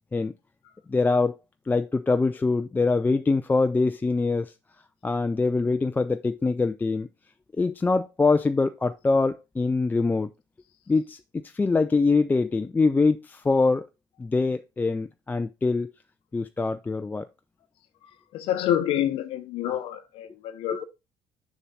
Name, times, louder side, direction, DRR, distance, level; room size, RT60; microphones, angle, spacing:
voice 1, 0.9-1.4 1.7-4.5 5.0-7.1 7.6-10.3 10.9-11.2 11.4-13.9 14.2-15.9 16.3-17.3 20.7-20.8, left 3 dB, 20° left, 0.4 m, -24 dB
voice 2, 18.3-20.8, left 11 dB, 70° left, 0.8 m, -27 dB
6.8 x 6.0 x 4.0 m
supercardioid pair, 70°, 10 cm